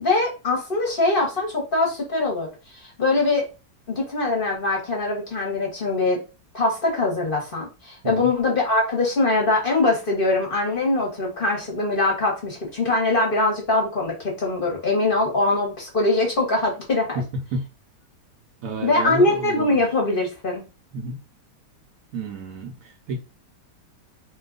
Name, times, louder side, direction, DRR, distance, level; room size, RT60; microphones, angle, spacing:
voice 1, 0.0-2.5 2.7-3.5 3.9-6.2 6.5-17.2 18.8-20.6, left 2 dB, 40° left, 0.9 m, -22 dB
voice 2, 17.1-17.7 18.6-19.8 20.9-21.2 22.1-23.2, right 2 dB, 65° right, 0.9 m, -31 dB
3.0 x 2.2 x 3.7 m
omnidirectional pair, 1.8 m